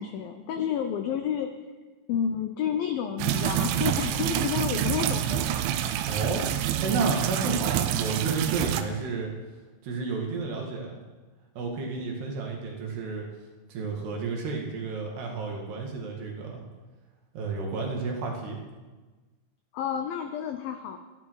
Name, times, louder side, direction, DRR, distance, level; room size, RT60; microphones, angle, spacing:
voice 1, 0.0-1.5 2.1-5.5 7.7-7.9 19.7-21.0, left 8 dB, 90° left, 7 dB, 2.0 m, -30 dB
sound 1, 3.2-8.8, right 11 dB, 85° right, 3.1 m, -27 dB
voice 2, 6.0-6.5 6.8-9.3 9.8-11.0 11.6-13.3 13.7-16.6 17.3-18.6, right 4 dB, 65° right, 0 dB, 4.1 m, -31 dB
25.5 x 10.5 x 4.8 m, 1.3 s
omnidirectional pair, 5.3 m